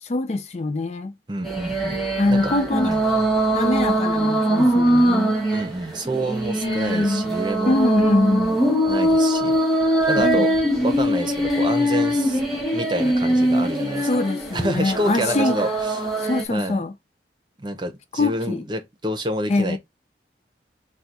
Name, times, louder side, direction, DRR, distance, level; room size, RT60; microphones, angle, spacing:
voice 1, 0.0-1.1 2.2-2.9 3.5-5.4 6.6-7.3 7.7-8.6 10.2-10.5 14.0-15.7 16.2-16.9 18.1-18.6 19.5-19.8, left 2 dB, 35° left, 0.4 m, -23 dB
voice 2, 1.3-2.0 2.3-3.0 5.5-7.8 8.8-9.5 10.1-10.5 10.8-12.4 12.7-14.1 14.5-16.1 16.5-16.8 17.6-19.8, right 1 dB, 25° right, 0.8 m, -28 dB
sound 1, 1.4-16.4, right 1 dB, ahead, 1.5 m, -22 dB
4.0 x 2.3 x 4.5 m
head